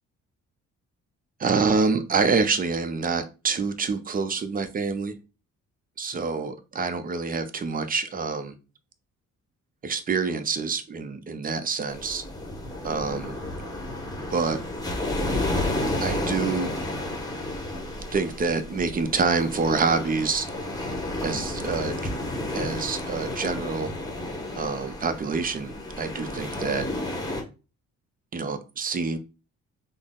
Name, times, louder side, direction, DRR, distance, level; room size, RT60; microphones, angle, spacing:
voice 1, 1.4-5.1 6.0-8.5 9.8-12.2 12.8-13.4 14.3-14.6 16.0-16.8 18.1-20.5 21.2-22.1 22.5-23.9 24.6-26.9 28.3-29.2, right 4 dB, 30° right, 0.6 m, -26 dB
sound 1, 11.9-27.4, left 1 dB, 10° left, 1.0 m, -31 dB
3.7 x 2.0 x 3.7 m
cardioid pair, 90°, 30 cm